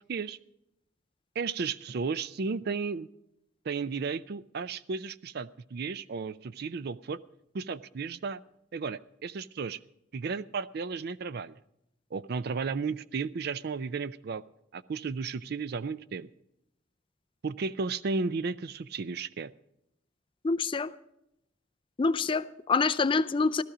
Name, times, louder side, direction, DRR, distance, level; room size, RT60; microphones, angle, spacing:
voice 1, 1.4-3.1 3.6-7.2 7.5-8.4 8.7-9.8 10.1-11.6 12.1-14.4 14.7-16.3 17.4-19.5, right 4 dB, 55° right, 17 dB, 0.4 m, -34 dB
voice 2, 20.4-20.9 22.0-23.6, left 4 dB, 25° left, 13 dB, 0.4 m, -26 dB
15.0 x 13.0 x 5.0 m, 0.80 s
head